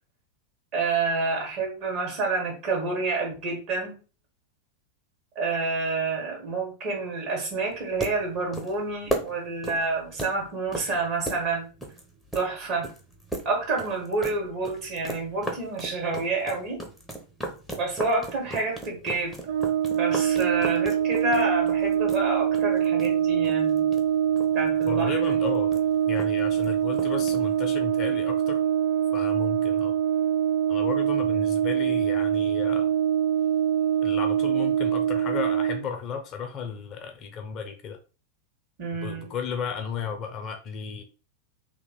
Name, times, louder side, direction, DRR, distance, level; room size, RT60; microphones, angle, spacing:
voice 1, 0.7-3.9 5.3-11.7 12.3-12.9 13.4-16.8 17.8-19.3 19.9-23.9 24.5-25.4 38.8-39.3, right 3 dB, 40° right, 1.7 m, -28 dB
sound 1, 7.7-27.6, right 1 dB, ahead, 0.8 m, -38 dB
Brass instrument, 19.5-35.8, right 9 dB, 55° right, 0.5 m, -24 dB
voice 2, 24.9-25.7 26.1-28.6 29.1-29.9 30.7-32.9 34.0-38.0 39.0-41.0, left 6 dB, 35° left, 0.6 m, -34 dB
3.0 x 2.8 x 4.0 m
figure-of-eight pair, 90°, 0 cm